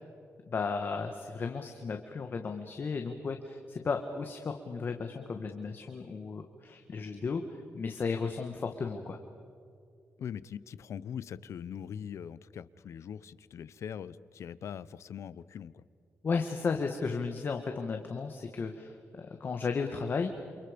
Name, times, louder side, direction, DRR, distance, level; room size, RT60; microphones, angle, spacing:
voice 1, 0.5-7.4 7.7-9.2 16.2-20.3, left 4 dB, 40° left, 5 dB, 1.6 m, -34 dB
voice 2, 10.2-15.8, left 8 dB, 70° left, 17 dB, 0.8 m, -42 dB
29.0 x 28.5 x 5.2 m, 2.5 s
wide cardioid pair, 135°, 5 cm